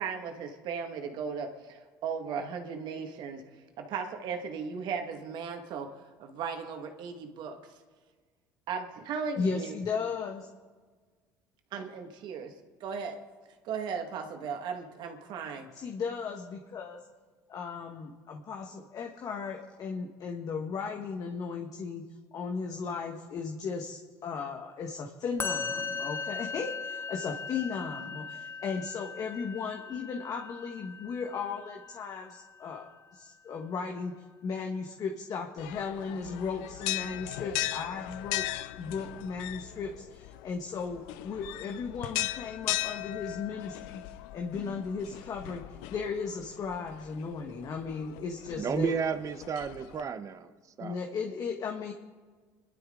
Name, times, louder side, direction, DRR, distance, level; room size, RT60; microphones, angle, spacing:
voice 1, 0.0-3.4 3.8-5.9 6.2-7.6 8.7-9.7 11.7-12.5 12.8-13.2 13.6-15.7, right 6 dB, 60° right, 5 dB, 2.0 m, -36 dB
voice 2, 9.4-10.5 15.7-17.0 17.5-22.0 22.3-34.1 34.4-38.4 38.8-44.0 44.3-49.0 50.8-51.9, left 5 dB, 45° left, 2 dB, 1.6 m, -36 dB
Musical instrument, 25.4-32.7, left 5 dB, 30° left, 1.0 m, -39 dB
sound 1, 35.6-50.0, left 16 dB, 80° left, 0.7 m, -38 dB
voice 3, 48.6-50.5 50.8-51.0, right 6 dB, 40° right, 9 dB, 1.1 m, -32 dB
25.5 x 12.0 x 3.9 m, 1.4 s
supercardioid pair, 95°, 9 cm